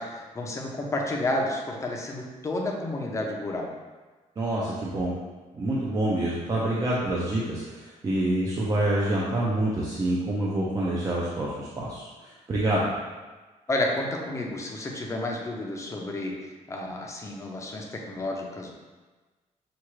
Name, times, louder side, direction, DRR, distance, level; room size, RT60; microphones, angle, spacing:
voice 1, 0.0-3.7 13.7-18.7, left 1 dB, 20° left, 0 dB, 0.5 m, -31 dB
voice 2, 4.4-5.1 5.5-12.9, right 1 dB, 25° right, -6 dB, 0.5 m, -27 dB
5.8 x 2.4 x 3.1 m, 1.3 s
cardioid pair, 165°, 13 cm